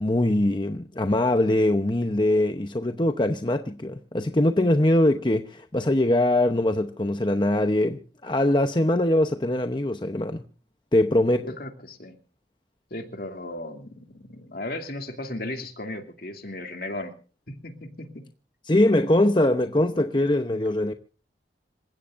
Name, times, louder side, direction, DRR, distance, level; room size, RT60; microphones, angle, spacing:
voice 1, 0.0-10.4 10.9-11.5 18.7-20.9, left 1 dB, 25° left, 0.8 m, -22 dB
voice 2, 11.4-12.1 12.9-17.1 17.5-18.3, left 1 dB, 55° left, 2.6 m, -36 dB
27.0 x 15.5 x 2.6 m
head